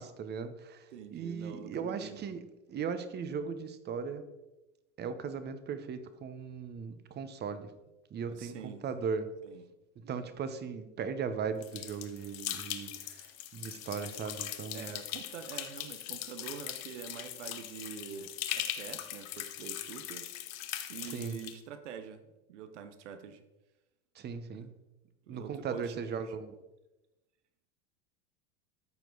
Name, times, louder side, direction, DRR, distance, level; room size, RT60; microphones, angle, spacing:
voice 1, 0.0-0.8 1.1-2.4 2.7-4.2 5.0-7.7 8.1-9.3 10.0-13.3 13.5-14.9 21.1-21.4 24.2-24.7 25.3-26.5, right 6 dB, 30° right, 11 dB, 0.9 m, -38 dB
voice 2, 0.9-2.3 8.3-8.8 9.4-9.6 14.7-20.2 20.9-23.4 24.5-24.7 25.3-26.4, right 8 dB, 80° right, 10 dB, 0.9 m, -46 dB
sound 1, 11.6-21.5, left 12 dB, 45° left, 1.0 m, -40 dB
13.5 x 4.6 x 3.9 m, 1.0 s
hypercardioid pair, 105°, 35 cm